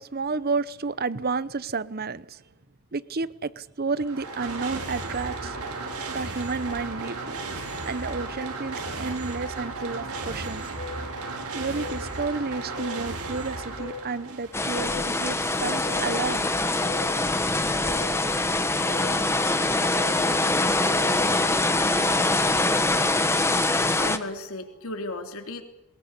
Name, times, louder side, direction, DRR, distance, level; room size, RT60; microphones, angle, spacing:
voice 1, 0.0-2.4 2.9-5.6 6.1-7.4 7.8-10.7 11.5-16.5, right 4 dB, 45° right, 0.8 m, -31 dB
sound 1, 3.9-14.7, right 3 dB, 85° right, 5.3 m, -34 dB
sound 2, 10.8-11.0 11.8-12.0 12.8-13.0 13.8-14.0 14.8-15.0 15.8-16.0 16.8-17.1 17.9-18.1 18.9-19.1 19.9-20.1 20.9-21.1, left 5 dB, 50° left, 5.2 m, -37 dB
sound 3, 14.5-24.2, left 2 dB, 10° left, 1.4 m, -24 dB
voice 2, 24.0-25.6, left 2 dB, 70° left, 3.4 m, -34 dB
22.5 x 21.0 x 8.3 m
head